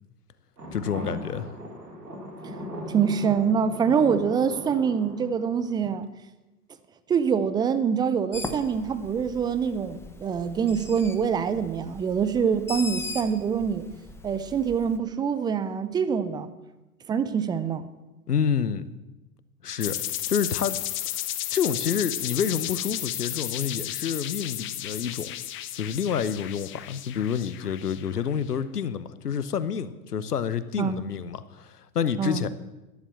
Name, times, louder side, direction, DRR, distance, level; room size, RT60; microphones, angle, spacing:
Laser of Doom, 0.6-5.9, equal, 85° right, 3.6 m, -38 dB
voice 1, 0.7-1.5 18.3-18.8 19.6-20.0 20.3-20.8 21.1-21.2 21.5-25.3 25.7-32.5, left 7 dB, 80° left, 14 dB, 1.0 m, -28 dB
voice 2, 2.9-6.1 7.1-13.9 14.2-16.5 17.1-17.8 30.8-31.1 32.2-32.5, right 7 dB, 10° right, 12 dB, 0.4 m, -25 dB
Bird, 8.3-15.0, left 2 dB, 5° left, 1.1 m, -40 dB
sound 1, 19.8-28.3, left 13 dB, 25° left, 0.9 m, -33 dB
12.5 x 10.5 x 7.5 m, 1.1 s
figure-of-eight pair, 95°, 46 cm